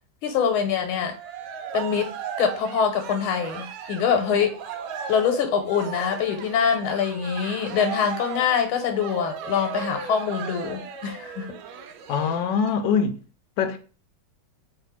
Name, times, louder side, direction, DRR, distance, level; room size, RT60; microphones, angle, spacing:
voice 1, 0.2-1.1 1.7-2.1 2.4-4.6 5.1-11.5, left 7 dB, 90° left, 1.7 m, -24 dB
Cheering, 1.0-12.7, right 6 dB, 90° right, 1.4 m, -36 dB
voice 2, 12.1-13.2 13.6-13.8, left 6 dB, 75° left, 1.1 m, -23 dB
3.3 x 2.7 x 4.1 m
omnidirectional pair, 2.2 m